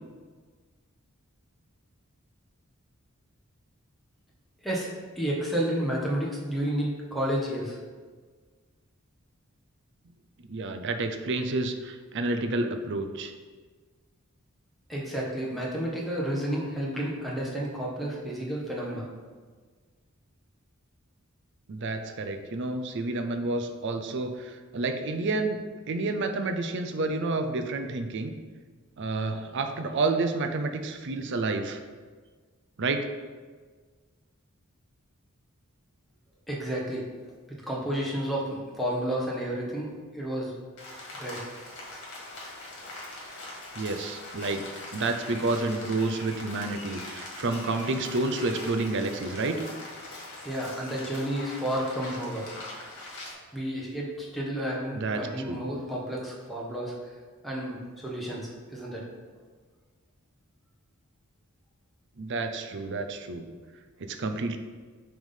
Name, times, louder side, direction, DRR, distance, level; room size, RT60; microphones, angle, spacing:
voice 1, 4.6-7.8 14.9-19.0 36.5-37.1 37.7-40.5 41.2-41.4 50.4-52.5 53.5-56.9 57.4-59.0, right 1 dB, ahead, -5 dB, 1.2 m, -31 dB
voice 2, 10.5-13.3 21.7-25.6 25.9-28.3 29.0-31.8 32.8-33.1 43.8-44.6 44.9-49.6 54.9-55.6 62.2-63.5 64.0-64.6, right 3 dB, 55° right, 7 dB, 0.5 m, -29 dB
Rain, 40.8-53.3, left 2 dB, 55° left, 1.8 m, -42 dB
6.1 x 3.5 x 5.6 m, 1.5 s
head